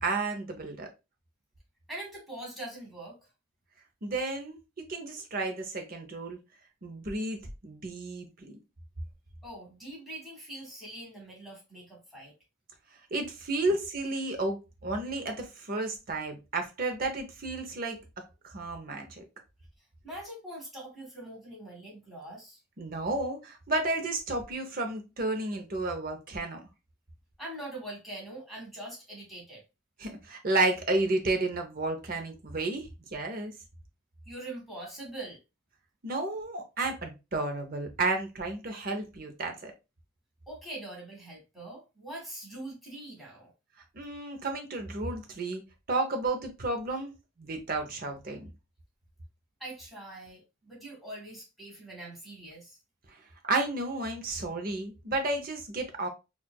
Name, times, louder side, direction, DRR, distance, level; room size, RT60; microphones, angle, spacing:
voice 1, 0.0-0.9 4.0-6.4 6.8-7.4 7.6-8.6 13.1-18.0 18.4-19.2 22.8-26.6 30.0-33.5 36.0-39.7 43.9-45.6 45.9-47.1 47.4-48.5 53.4-56.1, right 2 dB, 45° right, 0.7 m, -32 dB
voice 2, 1.9-3.2 9.4-12.3 20.0-22.6 27.4-29.6 34.2-35.4 40.5-43.5 49.6-52.8, right 1 dB, ahead, 1.5 m, -43 dB
4.4 x 2.4 x 2.2 m
head